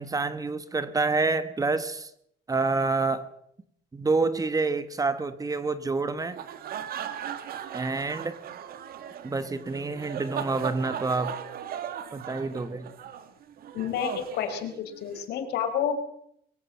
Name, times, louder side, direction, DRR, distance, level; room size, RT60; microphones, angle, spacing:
voice 1, 0.0-2.1 2.5-3.3 3.9-6.4 7.7-8.4 9.2-11.4 12.1-12.9, right 3 dB, 20° right, 13 dB, 1.5 m, -28 dB
sound 1, 6.2-15.2, right 9 dB, 65° right, 2.0 m, -38 dB
voice 2, 13.7-14.7 15.0-16.0, left 8 dB, 75° left, 6 dB, 4.3 m, -29 dB
23.5 x 15.5 x 7.6 m, 0.71 s
cardioid pair, 110°, 17 cm